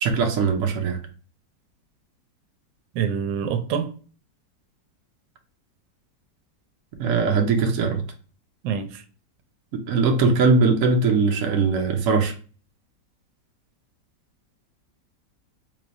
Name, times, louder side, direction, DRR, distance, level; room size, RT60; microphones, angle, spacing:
voice 1, 0.0-1.0 7.0-8.0 9.9-12.3, right 4 dB, 60° right, 1.0 m, -20 dB
voice 2, 2.9-3.9 8.6-9.0, right 7 dB, 85° right, 1.3 m, -26 dB
3.8 x 3.2 x 2.5 m
omnidirectional pair, 1.9 m